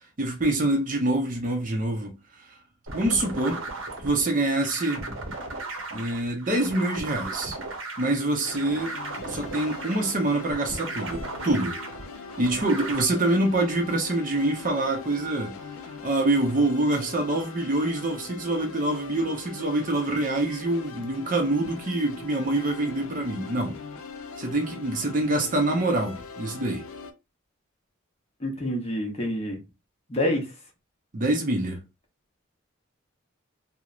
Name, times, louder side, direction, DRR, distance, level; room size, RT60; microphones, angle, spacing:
voice 1, 0.2-2.6 2.9-3.6 4.0-5.0 5.9-7.6 8.0-9.0 9.3-11.8 12.4-15.6 15.8-23.8 24.4-26.8 31.1-31.8, right 2 dB, 40° right, 0.5 m, -25 dB
sound 1, 2.9-13.0, right 2 dB, 75° right, 0.7 m, -36 dB
sound 2, 8.4-27.1, left 4 dB, 85° left, 0.4 m, -41 dB
voice 2, 28.4-29.6 30.1-30.5, left 1 dB, 30° left, 0.7 m, -27 dB
3.0 x 2.0 x 2.4 m
head